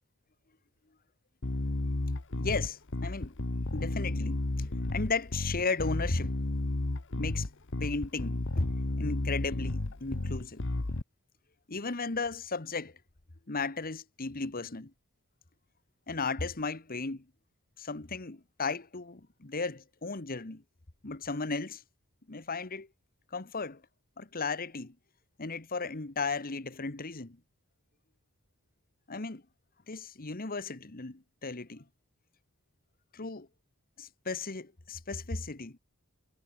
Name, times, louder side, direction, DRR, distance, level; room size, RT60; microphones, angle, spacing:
Bass guitar, 1.4-11.0, left 2 dB, 55° left, 1.2 m, -32 dB
voice 1, 2.4-3.3 3.7-6.4 7.2-7.5 7.8-8.7 9.0-10.6 11.7-13.0 13.5-14.9 16.1-17.2 17.8-20.6 21.0-21.8 22.3-22.9 23.3-23.8 24.2-24.9 25.4-27.4 29.1-29.4 29.9-31.8 33.1-33.5 34.0-35.8, left 4 dB, 40° left, 1.4 m, -35 dB
head